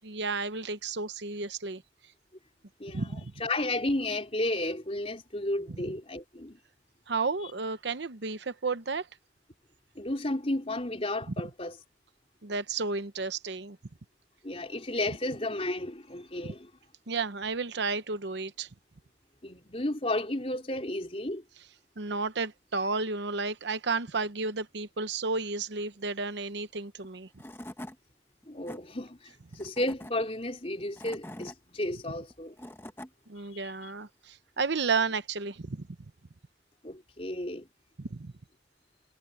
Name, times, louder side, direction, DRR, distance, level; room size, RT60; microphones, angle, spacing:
voice 1, 0.0-1.8 2.9-3.3 7.1-9.1 12.4-13.8 17.1-18.7 22.0-27.3 33.3-35.8 38.0-38.3, right 4 dB, 65° right, 0.8 m, -32 dB
voice 2, 3.4-6.6 10.0-11.7 14.4-16.7 19.4-21.4 28.5-32.6 33.5-33.9 36.8-37.7, left 1 dB, 30° left, 4.0 m, -33 dB
Tools / Wood, 27.0-27.1 27.4-28.0 28.4-28.8 29.5-30.1 30.7-31.6 32.3-33.1, left 1 dB, 10° left, 1.1 m, -43 dB
head